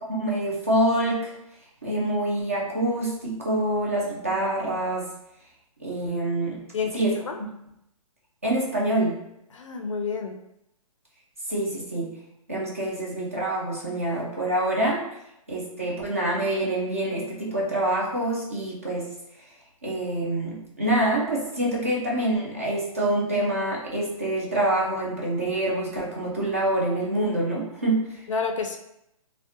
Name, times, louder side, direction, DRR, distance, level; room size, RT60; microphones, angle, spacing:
voice 1, 0.1-1.3 1.8-5.1 5.8-6.6 6.9-7.2 8.4-9.2 11.5-12.1 12.5-15.1 15.5-19.1 19.8-28.2, right 1 dB, 25° right, -4 dB, 0.3 m, -26 dB
voice 2, 6.7-7.4 9.5-10.3 28.3-28.8, left 5 dB, 60° left, 4 dB, 0.4 m, -29 dB
3.5 x 2.1 x 2.6 m, 0.82 s
hypercardioid pair, 180°, 19 cm